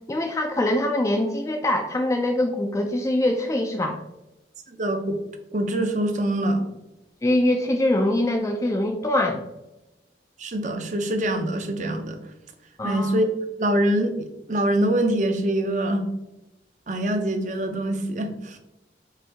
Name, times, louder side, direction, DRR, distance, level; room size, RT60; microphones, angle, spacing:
voice 1, 0.1-4.0 7.2-9.4 12.8-13.2, left 1 dB, 15° left, 3 dB, 0.3 m, -23 dB
voice 2, 4.7-5.2 5.5-6.6 10.4-12.2 12.8-13.3 13.6-14.2 14.5-16.1 16.9-18.6, right 1 dB, 45° right, 6 dB, 0.6 m, -24 dB
5.6 x 2.6 x 3.4 m, 0.94 s
head